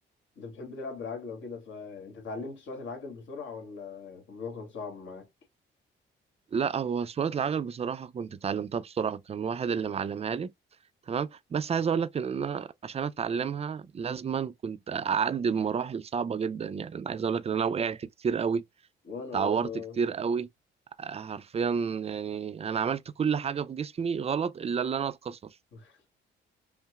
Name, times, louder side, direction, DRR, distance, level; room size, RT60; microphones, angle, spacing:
voice 1, 0.4-5.3 19.0-20.0 25.7-26.0, left 4 dB, 70° left, 1.9 m, -40 dB
voice 2, 6.5-10.5 11.1-18.6 19.3-20.5 21.0-25.4, right 6 dB, 30° right, 0.4 m, -30 dB
5.6 x 2.0 x 2.3 m
cardioid pair, 90°, 20 cm